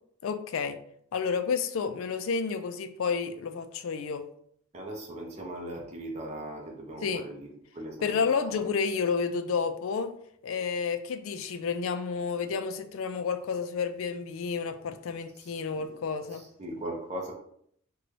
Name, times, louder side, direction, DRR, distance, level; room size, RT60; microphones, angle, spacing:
voice 1, 0.2-0.8 1.1-4.2 7.0-7.2 8.0-10.1 10.4-16.4, left 5 dB, 70° left, 9 dB, 0.4 m, -30 dB
voice 2, 4.7-7.5 7.7-8.2 8.5-8.7 15.4-15.9 16.3-17.3, right 1 dB, 30° right, -1 dB, 0.7 m, -39 dB
3.8 x 2.2 x 3.2 m, 0.67 s
head